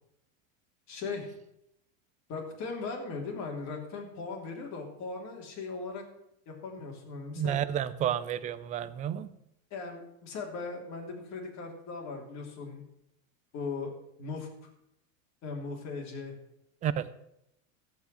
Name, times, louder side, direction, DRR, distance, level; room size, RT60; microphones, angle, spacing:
voice 1, 0.9-1.3 2.3-6.0 6.5-7.6 9.7-12.8 13.5-14.5 15.4-16.3, left 4 dB, 40° left, 1 dB, 3.1 m, -38 dB
voice 2, 7.3-9.3 16.8-17.1, right 10 dB, 20° right, 15 dB, 0.3 m, -31 dB
14.0 x 4.9 x 7.6 m, 0.80 s
supercardioid pair, 130°, 41 cm